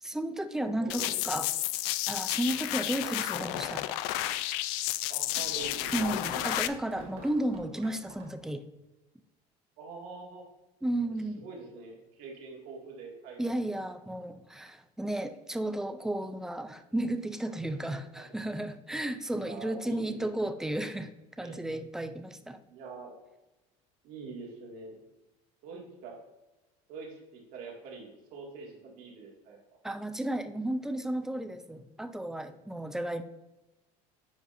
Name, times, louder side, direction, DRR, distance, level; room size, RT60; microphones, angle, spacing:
voice 1, 0.0-1.5 2.1-3.9 5.9-8.6 10.8-11.4 13.4-21.1 21.4-22.6 29.8-33.2, right 1 dB, 5° right, 9 dB, 0.4 m, -33 dB
voice 2, 0.6-1.4 3.0-3.2 5.1-6.4 9.8-10.4 11.4-13.5 17.6-17.8 18.1-18.3 19.4-20.2 21.4-21.6 22.7-23.2 24.0-25.0 25.6-26.2 26.9-29.6, right 4 dB, 65° right, -2 dB, 2.0 m, -45 dB
sound 1, 0.9-6.7, left 15 dB, 75° left, 0.4 m, -32 dB
sound 2, 4.7-8.5, right 3 dB, 85° right, 2.2 m, -48 dB
9.7 x 5.1 x 2.6 m, 1.0 s
cardioid pair, 150°, 16 cm